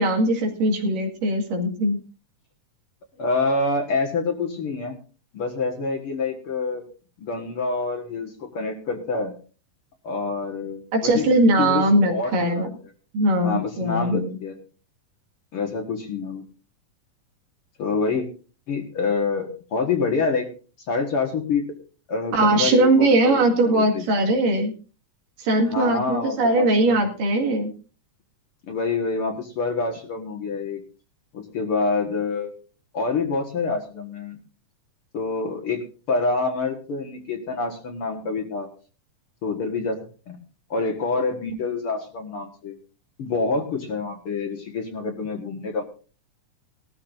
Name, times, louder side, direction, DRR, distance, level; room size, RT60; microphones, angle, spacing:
voice 1, 0.0-2.0 10.9-12.7 13.1-14.3 22.3-24.7 25.4-27.7, right 1 dB, 85° right, 2 dB, 3.8 m, -20 dB
voice 2, 3.2-5.0 5.3-6.8 7.2-9.3 10.0-11.3 11.6-11.8 12.1-12.7 13.4-14.6 15.5-16.4 17.8-18.3 18.7-20.5 20.9-21.6 22.1-24.0 25.7-27.0 28.7-30.8 31.3-32.5 32.9-34.4 35.1-35.8 36.1-38.7 39.4-40.0 40.3-40.4 40.7-42.7 43.2-45.8, left 4 dB, 50° left, 2 dB, 2.1 m, -26 dB
19.0 x 13.5 x 2.6 m, 0.36 s
omnidirectional pair, 3.7 m